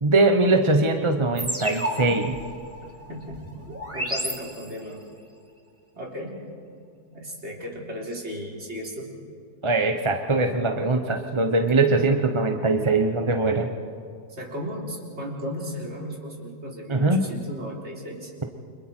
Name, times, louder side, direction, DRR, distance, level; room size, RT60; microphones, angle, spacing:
voice 1, 0.0-2.4 9.6-13.7 16.9-17.2, right 2 dB, 25° right, 5 dB, 0.8 m, -21 dB
sound 1, 1.4-5.0, equal, 10° right, 2.2 m, -32 dB
voice 2, 3.1-3.4 3.9-5.0 6.0-6.4 7.1-9.1 14.3-18.3, equal, 40° right, -2 dB, 3.9 m, -35 dB
29.5 x 26.0 x 4.5 m, 2.3 s
omnidirectional pair, 1.8 m